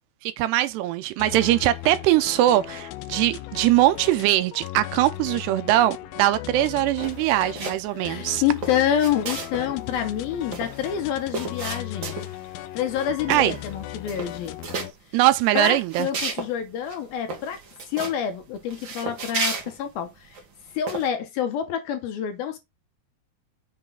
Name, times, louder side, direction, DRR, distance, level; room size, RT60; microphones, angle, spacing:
voice 1, 0.2-8.4 13.3-13.6 15.1-16.1, right 14 dB, 80° right, 2.6 m, -21 dB
sound 1, 1.2-14.9, left 16 dB, 90° left, 2.1 m, -37 dB
sound 2, 7.0-7.9 8.2-9.7 9.9-10.0 10.3-12.5 12.9-13.1 13.3-13.8 14.0-14.9 15.4-16.5 16.9-17.0 17.3-18.2 18.7-20.4 20.9-21.1, right 4 dB, 65° right, 1.1 m, -33 dB
voice 2, 8.0-12.1 12.7-14.6 15.5-17.6 17.9-20.4 20.7-22.6, left 9 dB, 70° left, 2.5 m, -27 dB
6.7 x 3.5 x 5.6 m
omnidirectional pair, 4.9 m